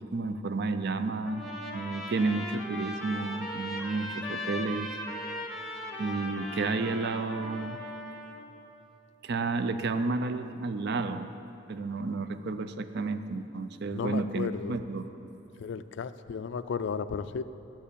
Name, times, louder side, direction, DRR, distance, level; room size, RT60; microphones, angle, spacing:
voice 1, 0.0-1.4 1.7-4.9 6.0-7.8 9.2-11.3 11.7-15.1, right 3 dB, 55° right, 10 dB, 0.4 m, -31 dB
Trumpet, 1.2-8.4, left 1 dB, ahead, 1.0 m, -38 dB
voice 2, 13.9-14.7 15.6-17.4, left 6 dB, 60° left, 13 dB, 0.3 m, -34 dB
9.7 x 7.3 x 6.9 m, 2.9 s
head